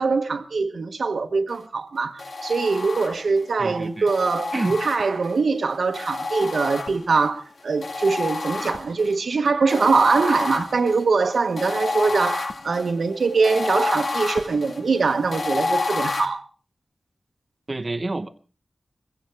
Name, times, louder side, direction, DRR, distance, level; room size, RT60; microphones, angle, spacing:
voice 1, 0.0-16.4, right 4 dB, 85° right, 1.2 m, -23 dB
sound 1, 2.2-3.5 4.1-5.4 5.9-7.3 7.8-9.1 9.7-16.3, left 3 dB, 80° left, 1.6 m, -29 dB
voice 2, 3.6-4.1 4.5-4.8 17.7-18.3, right 2 dB, 40° right, 0.9 m, -28 dB
20.5 x 16.5 x 3.5 m
wide cardioid pair, 65°, 0 cm